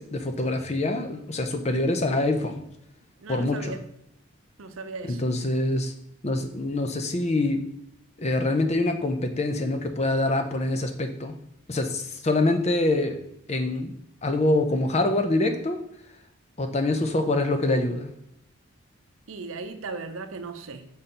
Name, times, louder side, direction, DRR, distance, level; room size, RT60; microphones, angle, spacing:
voice 1, 0.0-2.6 3.3-3.8 5.0-5.9 6.2-7.6 8.2-11.4 11.7-13.2 13.5-13.9 14.2-15.8 16.6-18.1, left 2 dB, 30° left, 7 dB, 0.6 m, -25 dB
voice 2, 3.2-3.8 4.6-5.2 19.3-20.9, right 4 dB, 80° right, 8 dB, 0.7 m, -37 dB
5.5 x 4.3 x 5.0 m, 0.77 s
head